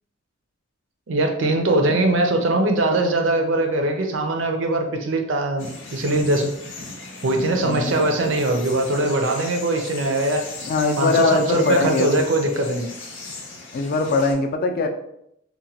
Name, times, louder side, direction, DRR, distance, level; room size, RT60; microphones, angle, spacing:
voice 1, 1.1-6.5 7.2-10.4 11.0-12.9, right 2 dB, 75° right, 4 dB, 0.5 m, -21 dB
sound 1, 5.6-14.3, left 3 dB, 85° left, 0.7 m, -37 dB
voice 2, 7.6-7.9 10.6-12.2 13.7-14.9, left 3 dB, 50° left, 5 dB, 0.3 m, -21 dB
2.9 x 2.2 x 2.8 m, 0.76 s
head